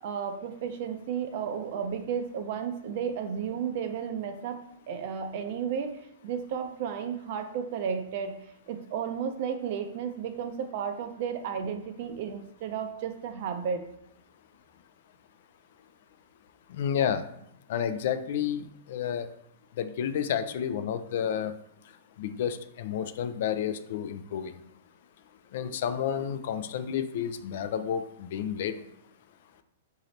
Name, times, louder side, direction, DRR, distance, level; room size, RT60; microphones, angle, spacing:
voice 1, 0.0-4.6 4.9-8.4 8.7-13.8, right 7 dB, 50° right, 7 dB, 0.5 m, -33 dB
voice 2, 16.7-17.2 17.7-19.3 19.8-21.5 22.2-24.5 25.5-28.8, left 8 dB, 60° left, 11 dB, 0.3 m, -30 dB
3.8 x 2.7 x 3.2 m, 0.76 s
hypercardioid pair, 145°, 0 cm